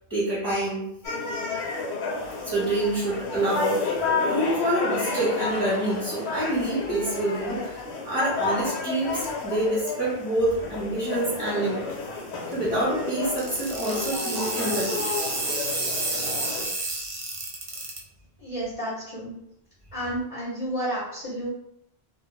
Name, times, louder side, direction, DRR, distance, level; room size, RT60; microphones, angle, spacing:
voice 1, 0.1-0.8 2.4-7.8 8.0-11.8 12.5-15.1 16.5-16.6, right 1 dB, 15° right, -9 dB, 1.0 m, -27 dB
sound 1, 1.0-16.6, left 3 dB, 80° left, 1.0 m, -31 dB
sound 2, 13.4-18.0, right 2 dB, 45° right, 0.5 m, -30 dB
voice 2, 18.4-19.4 19.9-21.5, right 1 dB, 35° left, -6 dB, 0.7 m, -31 dB
2.3 x 2.1 x 3.1 m, 0.76 s
omnidirectional pair, 1.1 m